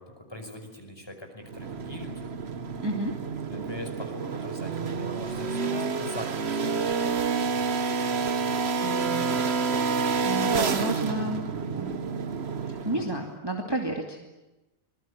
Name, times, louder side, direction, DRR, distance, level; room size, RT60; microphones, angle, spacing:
voice 1, 0.0-2.3 3.5-7.5 12.8-13.1, left 1 dB, 15° left, 4 dB, 5.6 m, -42 dB
sound 1, 1.5-13.3, right 5 dB, 45° right, 1.4 m, -29 dB
voice 2, 2.8-3.1 8.8-9.4 9.8-12.0 12.6-14.2, right 1 dB, 15° right, 2 dB, 2.5 m, -32 dB
25.5 x 22.0 x 9.9 m, 1.0 s
omnidirectional pair, 1.6 m